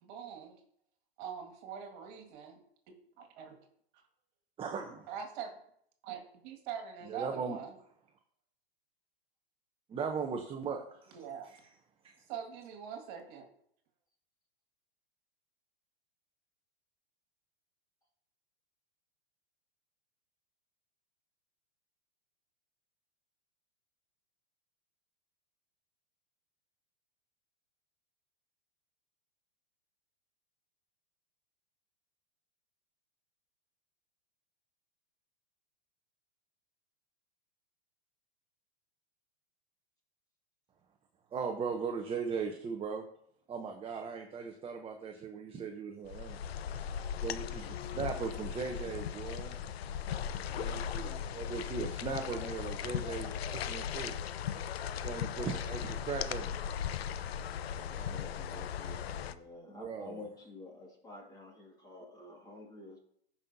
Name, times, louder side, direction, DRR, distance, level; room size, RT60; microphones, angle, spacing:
voice 1, 0.0-0.5 1.2-2.6 3.2-3.6 5.1-5.5 6.0-7.7 11.1-11.5 12.3-13.5, right 8 dB, 50° right, 4 dB, 2.1 m, -43 dB
voice 2, 4.6-5.1 7.1-7.6 9.9-11.2 12.0-12.1 41.3-43.1 43.5-46.4 47.2-49.6 50.5-54.1 55.0-56.6 59.7-60.2, right 5 dB, 20° right, 3 dB, 0.8 m, -38 dB
sound 1, 46.1-59.3, left 8 dB, 75° left, 0.7 m, -38 dB
voice 3, 50.6-51.2 57.8-63.0, left 2 dB, 10° left, -1 dB, 2.3 m, -50 dB
15.5 x 5.4 x 2.8 m, 0.68 s
hypercardioid pair, 120°, 31 cm